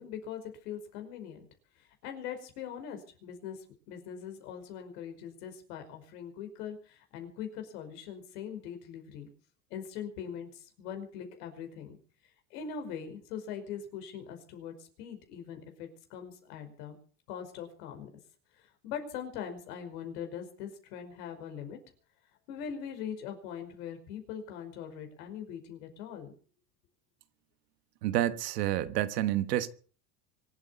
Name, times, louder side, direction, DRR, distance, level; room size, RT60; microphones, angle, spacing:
voice 1, 0.0-1.4 1.8-9.3 9.7-12.0 12.5-17.0 17.3-18.1 18.6-21.8 22.5-26.3, left 8 dB, 75° left, 5.2 m, -42 dB
voice 2, 28.0-29.7, right 13 dB, 90° right, 1.4 m, -29 dB
25.0 x 8.5 x 6.9 m
supercardioid pair, 90°, 46 cm